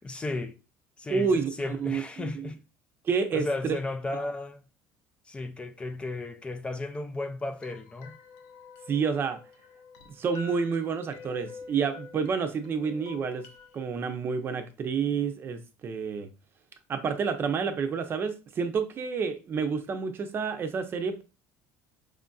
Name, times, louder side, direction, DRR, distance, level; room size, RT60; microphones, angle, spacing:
voice 1, 0.0-0.6 1.0-2.6 3.3-4.6 5.3-8.2, left 2 dB, 20° left, 0.4 m, -34 dB
voice 2, 1.1-2.5 3.0-3.8 4.1-4.2 8.9-9.4 10.1-13.5 13.7-16.3 16.9-21.2, right 5 dB, 40° right, 0.6 m, -29 dB
sound 1, 7.6-13.8, left 5 dB, 85° left, 0.6 m, -48 dB
4.9 x 2.6 x 2.3 m
supercardioid pair, 110°, 6 cm